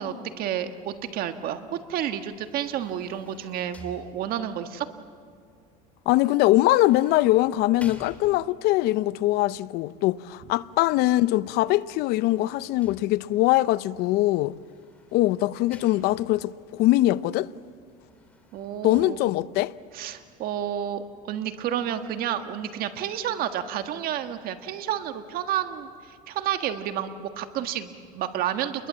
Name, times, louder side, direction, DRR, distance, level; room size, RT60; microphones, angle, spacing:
voice 1, 0.0-4.9 18.5-19.2 19.9-28.9, right 10 dB, 55° right, 1.7 m, -30 dB
sound 1, 2.2-4.6 6.5-8.8 11.6-13.5 14.5-16.5 17.8-19.0, left 2 dB, 5° left, 3.2 m, -52 dB
voice 2, 6.1-14.5 15.1-17.5 18.8-19.7, left 16 dB, 60° left, 0.7 m, -22 dB
29.5 x 22.0 x 7.6 m
supercardioid pair, 115°, 19 cm